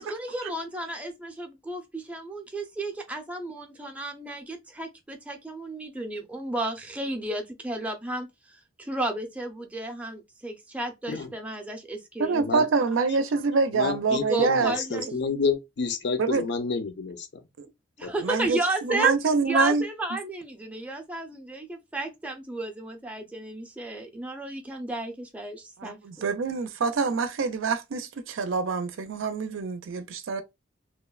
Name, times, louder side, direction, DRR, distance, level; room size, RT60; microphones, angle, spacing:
voice 1, 0.0-8.3 8.8-12.5 14.3-15.1 18.0-19.1 19.4-26.0, right 1 dB, 5° right, 0.5 m, -33 dB
voice 2, 12.2-14.7 16.2-16.5 17.6-17.7 18.2-19.8 25.8-30.4, right 4 dB, 90° right, 0.5 m, -25 dB
voice 3, 13.7-17.3 18.0-18.1, left 5 dB, 60° left, 0.5 m, -29 dB
2.8 x 2.1 x 2.3 m
head